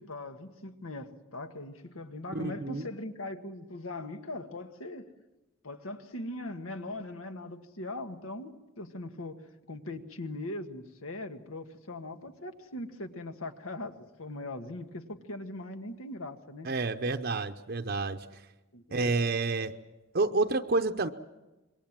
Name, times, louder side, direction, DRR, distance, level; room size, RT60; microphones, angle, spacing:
voice 1, 0.0-5.1 5.6-9.3 9.7-16.7 18.7-19.1, left 2 dB, 90° left, 7 dB, 1.7 m, -40 dB
voice 2, 2.3-2.9 16.6-18.4 18.9-19.7 20.1-21.1, right 3 dB, 50° right, 6 dB, 0.7 m, -29 dB
26.5 x 22.0 x 7.5 m, 1.1 s
head